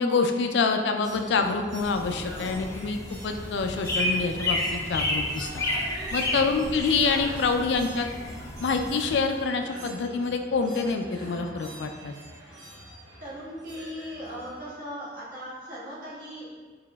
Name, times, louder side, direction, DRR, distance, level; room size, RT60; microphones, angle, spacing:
voice 1, 0.0-3.0 3.2-5.6 6.1-8.1 8.6-12.1, left 4 dB, 80° left, 5 dB, 0.4 m, -26 dB
sound 1, 1.0-14.7, equal, 75° right, 1.0 m, -44 dB
sound 2, 1.8-9.2, left 1 dB, 15° left, 0.4 m, -31 dB
voice 2, 6.2-6.7 12.7-12.9 13.2-16.5, equal, 50° right, -10 dB, 1.5 m, -39 dB
4.9 x 3.4 x 2.3 m, 1.5 s
head